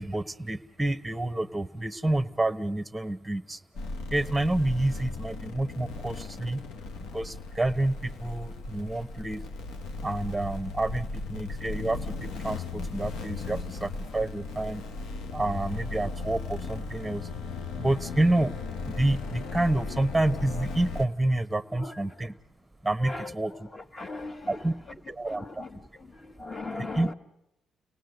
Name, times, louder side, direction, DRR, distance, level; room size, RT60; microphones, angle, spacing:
voice 1, 0.0-3.6 4.1-6.6 7.1-9.4 10.0-14.8 15.3-17.3 17.8-18.5 18.9-22.4 22.8-23.7 24.5-24.8 25.1-25.6 26.8-27.1, right 2 dB, 10° right, 1.1 m, -28 dB
sound 1, 3.8-21.1, left 3 dB, 80° left, 1.3 m, -37 dB
voice 2, 23.0-23.3 23.9-24.5 25.2-25.7 26.0-26.1 26.4-27.1, left 3 dB, 25° left, 1.5 m, -37 dB
30.0 x 19.0 x 8.0 m
cardioid pair, 90°, 0 cm